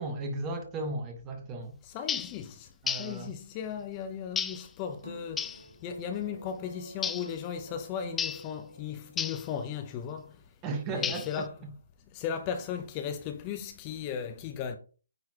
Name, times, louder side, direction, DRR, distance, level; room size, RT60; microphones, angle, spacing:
voice 1, 0.0-1.8 2.8-3.3 10.6-11.7, right 2 dB, 20° right, 1.2 m, -35 dB
voice 2, 1.9-2.7 3.0-5.6 5.8-10.3 10.9-11.5 12.1-14.8, left 8 dB, 25° left, 0.7 m, -36 dB
sound 1, 2.1-2.4 2.9-3.2 4.4-4.7 5.4-5.6 7.0-7.3 8.2-8.5 9.2-9.5 11.0-11.4, left 7 dB, 10° left, 0.3 m, -33 dB
sound 2, 5.0-9.5, right 2 dB, 80° right, 0.7 m, -48 dB
9.0 x 3.9 x 2.9 m
figure-of-eight pair, 150°, 0 cm